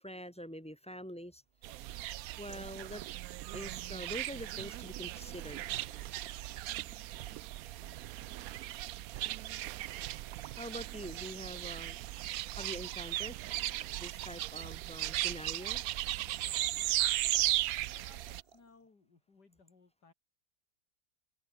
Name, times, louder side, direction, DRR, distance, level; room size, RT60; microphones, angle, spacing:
voice 1, 0.0-1.4 2.4-3.0 3.5-5.6 10.6-13.4 14.0-15.8, equal, 5° left, 1.9 m, -45 dB
sound 1, 1.5-18.9, right 6 dB, 40° right, 1.2 m, -60 dB
sound 2, 1.6-18.4, right 15 dB, 70° right, 0.9 m, -37 dB
voice 2, 7.8-8.1 17.8-20.1, left 4 dB, 80° left, 4.1 m, -62 dB
omnidirectional pair, 1.8 m